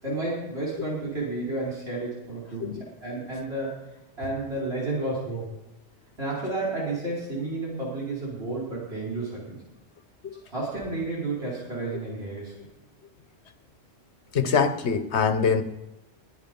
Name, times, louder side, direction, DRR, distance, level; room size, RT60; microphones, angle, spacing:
voice 1, 0.0-2.6 3.0-3.7 4.2-5.5 6.2-9.6 10.5-12.5, right 2 dB, 75° right, -5 dB, 5.0 m, -31 dB
voice 2, 14.3-15.6, left 6 dB, 90° left, 10 dB, 1.3 m, -24 dB
22.5 x 8.2 x 5.4 m, 0.96 s
omnidirectional pair, 1.1 m